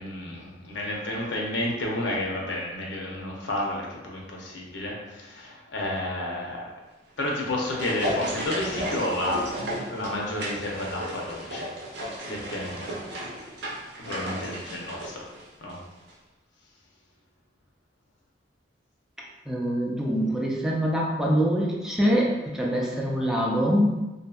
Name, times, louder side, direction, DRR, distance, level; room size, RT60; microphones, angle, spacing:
voice 1, 0.0-6.7 7.2-9.5 9.9-11.7 12.2-13.0 14.0-15.3 15.6-15.8, left 1 dB, 85° left, -2 dB, 0.6 m, -31 dB
sound 1, 7.2-16.1, equal, 75° right, 0.6 m, -34 dB
voice 2, 19.5-23.9, equal, 5° right, -3 dB, 0.3 m, -24 dB
2.6 x 2.6 x 2.3 m, 1.1 s
head